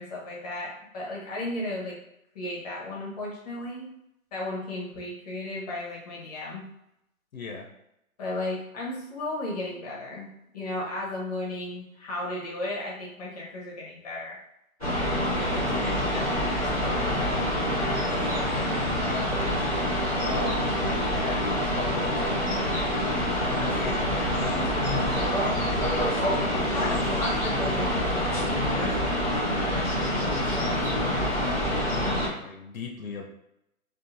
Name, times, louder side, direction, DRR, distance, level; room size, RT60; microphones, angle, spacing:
voice 1, 0.0-1.9 2.3-3.9 4.3-6.6 8.2-10.3 10.5-14.4 26.5-28.2, left 1 dB, 30° left, -4 dB, 0.8 m, -34 dB
voice 2, 7.3-7.7 15.3-19.6 20.2-22.4 23.0-26.1 26.7-27.2 28.4-33.3, left 4 dB, 70° left, 2 dB, 0.7 m, -38 dB
sound 1, 14.8-32.3, equal, 5° right, 0.5 m, -26 dB
2.6 x 2.6 x 2.5 m, 0.82 s
hypercardioid pair, 150°, 43 cm